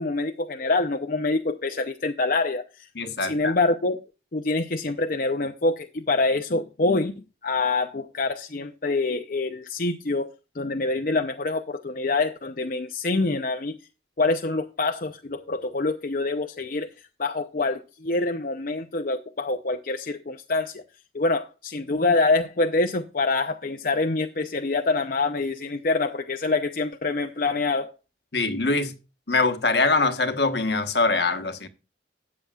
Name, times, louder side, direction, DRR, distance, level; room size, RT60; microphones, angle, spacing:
voice 1, 0.0-2.9 3.2-4.0 4.3-10.3 10.5-13.8 14.2-16.9 17.2-20.8 21.1-27.9, left 3 dB, 50° left, 0.6 m, -26 dB
voice 2, 2.9-3.5 28.3-29.0 29.3-31.7, left 3 dB, 70° left, 1.3 m, -23 dB
13.5 x 8.7 x 2.4 m
head